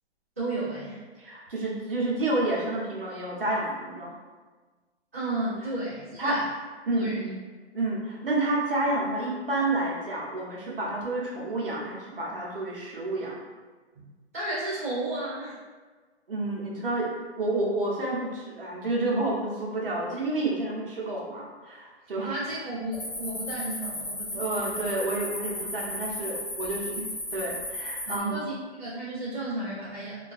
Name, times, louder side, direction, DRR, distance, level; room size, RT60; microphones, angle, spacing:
voice 1, 0.4-1.0 5.1-6.5 6.9-7.3 13.9-14.0 14.3-15.5 22.2-24.7 26.9-27.0 28.1-30.3, right 2 dB, 15° right, -18 dB, 0.5 m, -33 dB
voice 2, 1.2-4.1 6.2-6.5 6.9-7.1 7.7-13.4 16.3-22.4 24.3-27.0 27.3-28.4, right 2 dB, 55° right, -4 dB, 0.7 m, -29 dB
sound 1, 22.9-28.2, left 1 dB, 35° left, 1.0 m, -35 dB
2.3 x 2.2 x 2.4 m, 1.4 s
hypercardioid pair, 175°, 34 cm